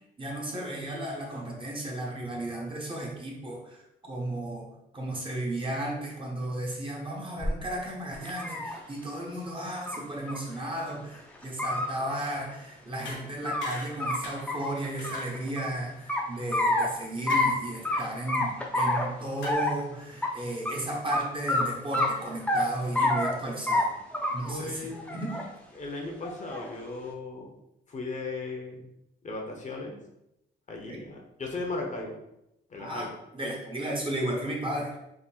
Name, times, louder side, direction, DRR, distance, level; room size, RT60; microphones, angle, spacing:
voice 1, 0.2-24.0 24.3-25.3 30.9-31.0 32.8-34.9, right 1 dB, 25° right, -1 dB, 0.9 m, -34 dB
sound 1, 7.4-7.5 8.1-8.8 9.9-10.0 10.3-10.4 10.8-10.9 11.4-11.9 13.0-13.7 14.0-14.2 14.5-15.7 16.1-16.9 17.3-17.5 17.8-18.0 18.3-19.1 19.4-19.8 20.2-20.3 20.7-20.8 21.1-21.2 21.5-21.6 21.9-22.6 22.9-23.3 23.7-23.8 24.1-24.6 24.9-25.5 26.2-26.7, left 2 dB, 5° left, 0.6 m, -27 dB
sound 2, 13.0-13.2 13.6-14.0 14.2-14.5 15.0-15.4 17.3-17.5 17.9-18.1 19.4-19.5, left 2 dB, 70° left, 0.9 m, -40 dB
voice 2, 24.5-25.0 25.7-27.5 27.9-28.9 29.2-30.0 30.7-32.2 32.7-33.1, left 3 dB, 40° left, 1 dB, 0.8 m, -36 dB
3.7 x 2.0 x 4.2 m, 0.84 s
cardioid pair, 90°, 20 cm